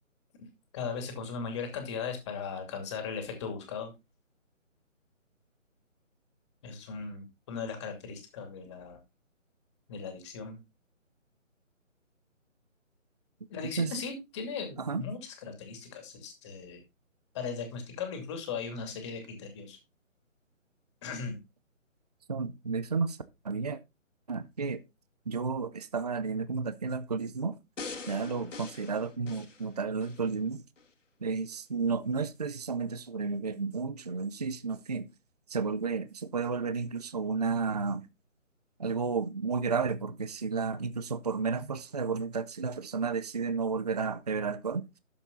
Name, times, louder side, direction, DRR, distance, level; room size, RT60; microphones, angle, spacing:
voice 1, 0.7-3.9 6.6-9.0 9.9-10.6 13.5-16.8 17.3-19.8 21.0-21.4, left 5 dB, 20° left, 2.5 m, -38 dB
voice 2, 22.3-23.2 23.4-23.8 24.3-24.8 25.3-27.6 28.1-30.6 31.2-35.1 35.5-38.0 38.8-44.8, right 5 dB, 30° right, 0.6 m, -32 dB
sound 1, 27.8-30.3 30.8-30.9, left 4 dB, 70° left, 2.3 m, -43 dB
12.0 x 7.4 x 3.8 m
figure-of-eight pair, 155°, 39 cm